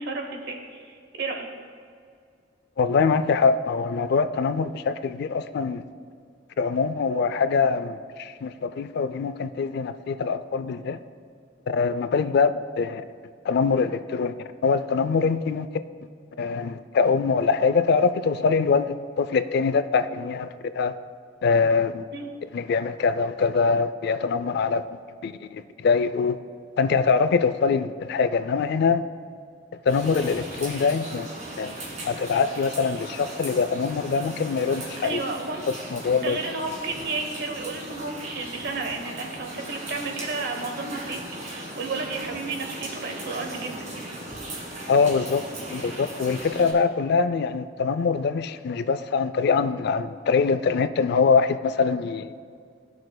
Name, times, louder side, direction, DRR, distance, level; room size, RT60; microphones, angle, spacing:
voice 1, 0.0-1.5 22.1-22.3 35.0-35.7 36.2-43.8, right 3 dB, 60° right, 3 dB, 1.0 m, -32 dB
voice 2, 2.8-5.9 6.6-11.0 11.7-13.0 13.4-14.4 14.6-15.7 16.4-20.5 20.7-20.9 21.4-22.1 22.5-26.4 26.8-29.1 29.9-31.3 31.6-31.7 32.0-35.2 35.9-36.4 44.9-45.4 45.7-52.3, left 5 dB, 60° left, 12 dB, 0.3 m, -23 dB
sound 1, 29.9-46.7, right 1 dB, 40° right, 1.8 m, -38 dB
13.5 x 6.4 x 2.2 m, 2.3 s
head